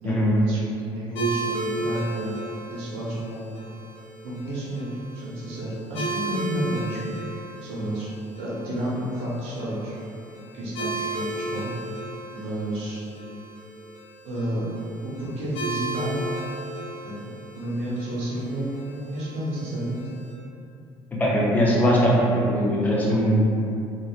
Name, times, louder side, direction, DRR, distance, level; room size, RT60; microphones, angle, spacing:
voice 1, 0.0-0.6 0.9-2.4 2.7-3.6 4.2-7.1 7.6-8.1 8.4-10.0 10.5-11.7 12.3-13.0 14.2-14.7 15.0-16.2 17.0-17.3 17.5-20.0, right 1 dB, 80° right, -7 dB, 0.8 m, -31 dB
sound 1, 1.1-20.3, right 2 dB, 60° left, 0.9 m, -35 dB
voice 2, 21.2-23.4, equal, 15° left, -5 dB, 0.5 m, -20 dB
3.0 x 2.4 x 2.4 m, 2.6 s
cardioid pair, 150°, 10 cm